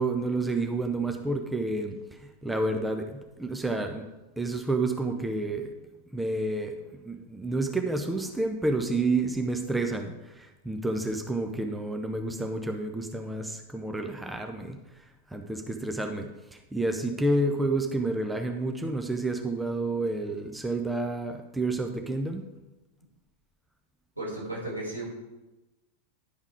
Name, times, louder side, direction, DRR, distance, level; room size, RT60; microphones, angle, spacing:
voice 1, 0.0-2.0 2.4-4.0 4.4-5.7 6.1-6.8 7.0-14.8 15.3-22.4, right 2 dB, 5° right, 4 dB, 0.8 m, -29 dB
voice 2, 24.2-25.1, right 2 dB, 85° right, -5 dB, 3.7 m, -34 dB
10.5 x 5.5 x 4.9 m, 1.0 s
figure-of-eight pair, 90°, 0 cm